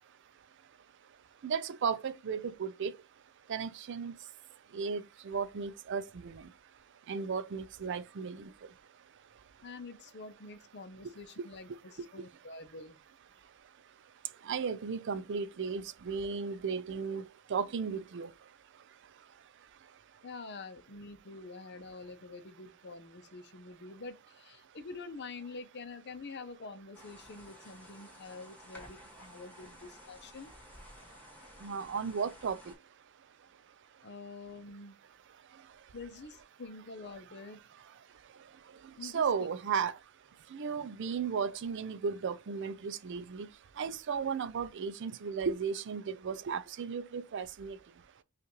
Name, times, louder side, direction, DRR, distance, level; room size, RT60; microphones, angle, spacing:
voice 1, 1.4-2.9 3.5-4.1 4.7-6.4 7.1-8.5 14.5-18.3 31.6-32.6 39.0-39.9 40.5-43.5 43.8-47.8, right 6 dB, 60° right, 0.4 m, -35 dB
voice 2, 9.6-13.0 20.2-30.5 34.0-35.0 35.9-37.6 39.0-39.3, left 3 dB, 55° left, 0.7 m, -47 dB
sound 1, 26.9-32.7, left 1 dB, 10° left, 1.6 m, -54 dB
5.5 x 2.5 x 3.0 m
head